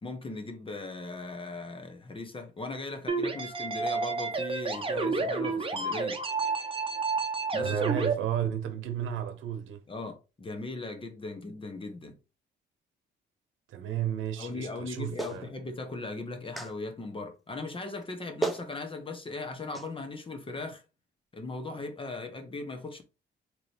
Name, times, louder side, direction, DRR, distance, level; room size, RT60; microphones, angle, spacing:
voice 1, 0.0-6.2 7.5-7.8 9.9-12.2 14.4-20.8 21.3-23.0, left 3 dB, 25° left, 1.0 m, -38 dB
sound 1, 3.1-8.1, right 4 dB, 25° right, 0.9 m, -30 dB
voice 2, 7.6-9.8 13.7-15.5, right 10 dB, 80° right, 0.9 m, -33 dB
Clapping, 15.2-15.4 16.6-16.7 18.0-18.1 18.4-18.7 19.7-19.9, right 3 dB, ahead, 0.9 m, -32 dB
3.8 x 3.1 x 3.3 m
cardioid pair, 90°, 20 cm